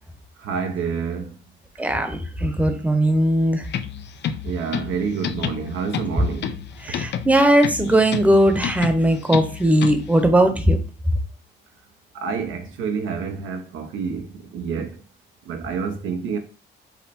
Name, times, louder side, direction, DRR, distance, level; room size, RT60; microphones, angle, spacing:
voice 1, 0.4-1.4 4.4-6.5 12.1-15.0 15.4-16.4, right 6 dB, 80° right, 0.9 m, -28 dB
voice 2, 1.8-3.7 6.2-6.3 6.8-10.8, right 1 dB, 5° right, 0.9 m, -18 dB
sound 1, 3.7-10.2, left 8 dB, 60° left, 0.5 m, -31 dB
5.7 x 2.1 x 4.2 m
cardioid pair, 90°, 20 cm